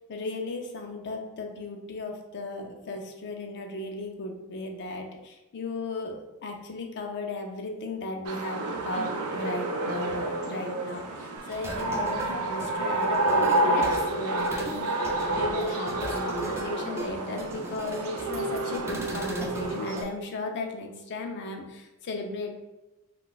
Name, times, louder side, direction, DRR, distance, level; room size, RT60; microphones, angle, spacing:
voice 1, 0.1-22.5, left 2 dB, 55° left, 4 dB, 0.4 m, -36 dB
sound 1, 8.2-20.0, right 2 dB, 80° right, 0.5 m, -29 dB
sound 2, 11.5-20.1, right 1 dB, 10° right, 0.3 m, -39 dB
3.8 x 2.3 x 2.3 m, 0.99 s
head